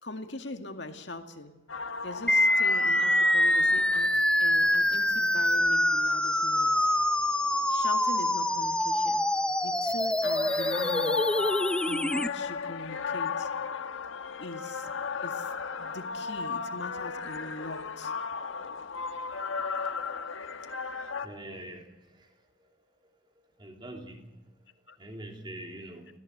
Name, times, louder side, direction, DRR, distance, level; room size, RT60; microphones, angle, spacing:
voice 1, 0.0-1.5 2.0-6.9 7.7-9.2 9.6-11.2 11.9-13.5 14.4-14.9 15.2-15.5 15.8-18.1 24.9-25.0, left 2 dB, 60° left, 6 dB, 2.2 m, -41 dB
sound 1, 1.7-8.4 8.9-9.3 9.6-21.3, left 5 dB, 85° left, 1.3 m, -36 dB
sound 2, 2.3-12.3, left 1 dB, 5° left, 0.7 m, -25 dB
voice 2, 21.2-21.8 23.6-24.2 25.0-26.1, right 1 dB, 25° right, 2 dB, 3.3 m, -42 dB
27.0 x 17.5 x 6.8 m, 1.0 s
head